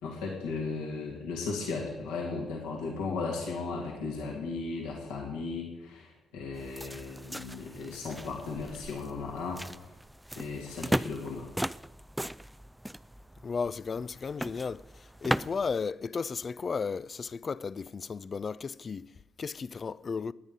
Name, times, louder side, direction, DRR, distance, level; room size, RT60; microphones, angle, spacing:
voice 1, 0.0-9.6 10.4-11.5, left 4 dB, 75° left, 2.6 m, -36 dB
sound 1, 6.5-15.7, equal, 5° right, 0.4 m, -37 dB
voice 2, 13.4-19.1 19.4-20.3, left 5 dB, 45° left, 0.5 m, -34 dB
20.0 x 9.6 x 5.4 m
hypercardioid pair, 40°, 0 cm